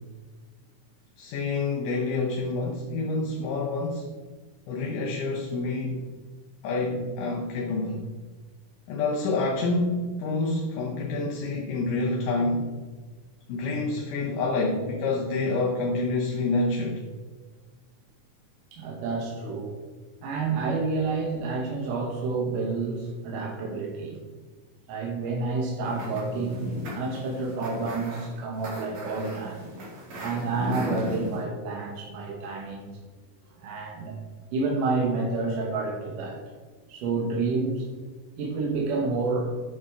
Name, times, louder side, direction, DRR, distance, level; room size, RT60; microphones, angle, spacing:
voice 1, 1.2-4.1 4.7-6.0 6.6-8.1 8.9-12.7 13.5-17.0, left 3 dB, 85° left, 0 dB, 2.5 m, -27 dB
voice 2, 18.7-19.7 20.2-24.2 24.9-29.6 30.2-32.9 33.6-34.2 34.5-36.4 36.9-37.9 38.4-39.5, right 3 dB, 80° right, -1 dB, 2.9 m, -29 dB
sound 1, 25.8-31.4, left 1 dB, 60° right, 3.5 m, -36 dB
8.9 x 7.4 x 3.6 m, 1.4 s
omnidirectional pair, 3.7 m